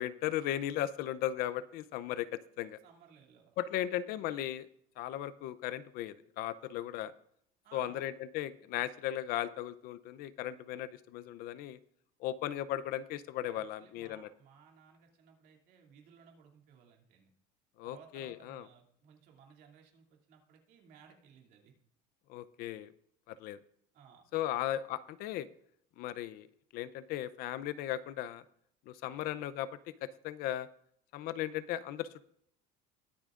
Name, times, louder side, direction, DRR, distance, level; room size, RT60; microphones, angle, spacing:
voice 1, 0.0-2.8 3.6-4.7 5.0-7.1 7.7-11.8 12.2-14.3 17.8-18.7 22.3-22.9 23.3-23.6 24.3-25.5 26.0-26.5 26.7-28.4 28.9-29.7 30.0-30.7 31.1-32.3, left 12 dB, 60° left, 16 dB, 0.6 m, -37 dB
voice 2, 2.8-4.0 7.6-8.0 13.4-17.3 17.8-21.7 23.9-24.6, right 7 dB, 55° right, 1 dB, 2.6 m, -60 dB
21.5 x 8.6 x 2.5 m, 0.70 s
cardioid pair, 160°, 18 cm